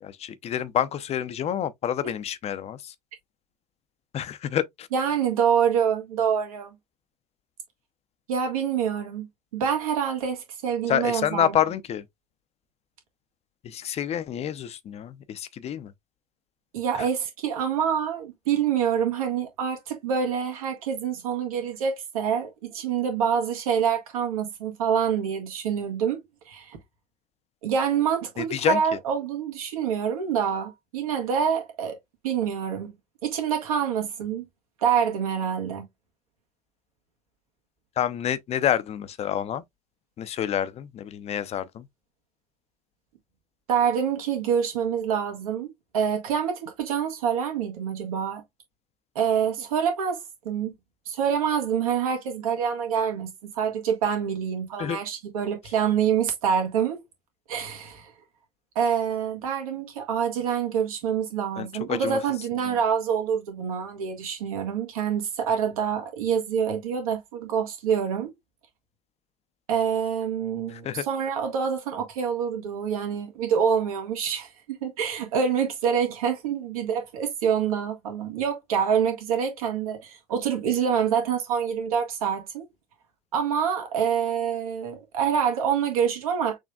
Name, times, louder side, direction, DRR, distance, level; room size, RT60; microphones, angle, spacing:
voice 1, 0.0-2.9 4.1-4.9 10.9-12.0 13.6-15.9 17.0-17.1 28.4-28.8 38.0-39.6 40.2-41.9 54.8-55.0 61.6-62.2 62.7-62.8 70.7-71.0, left 10 dB, 30° left, 0.7 m, -28 dB
voice 2, 4.9-6.7 8.3-9.3 9.5-11.5 16.7-26.8 27.6-32.0 32.2-32.9 33.2-34.4 34.8-35.8 43.7-48.4 49.1-50.7 51.0-57.0 57.5-58.1 58.7-68.3 69.7-82.7 83.3-86.6, right 7 dB, 65° right, 1.6 m, -26 dB
6.3 x 3.2 x 2.3 m
figure-of-eight pair, 70°, 20 cm